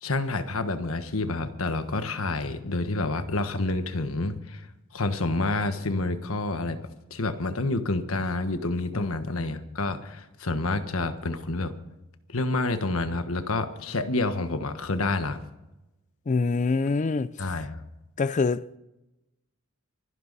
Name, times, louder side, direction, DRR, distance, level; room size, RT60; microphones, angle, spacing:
voice 1, 0.0-4.6 4.9-6.8 7.1-11.7 12.3-15.4 17.4-17.8, left 2 dB, 80° left, 1.3 m, -28 dB
voice 2, 16.3-17.3 18.2-18.8, left 4 dB, 35° left, 0.4 m, -25 dB
24.0 x 11.5 x 4.1 m
head